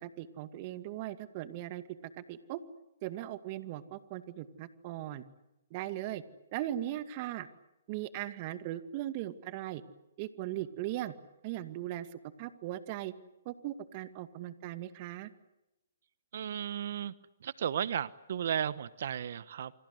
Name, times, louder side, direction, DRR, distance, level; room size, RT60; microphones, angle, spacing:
voice 1, 0.0-1.8 2.2-2.6 3.0-5.2 5.7-6.2 6.5-7.5 7.9-9.8 10.2-11.1 11.4-13.1 13.5-15.3, right 13 dB, 40° right, 11 dB, 2.3 m, -38 dB
voice 2, 16.3-17.1 17.4-19.7, right 9 dB, 60° right, 17 dB, 1.1 m, -34 dB
29.0 x 25.5 x 8.1 m, 0.91 s
hypercardioid pair, 135°, 0 cm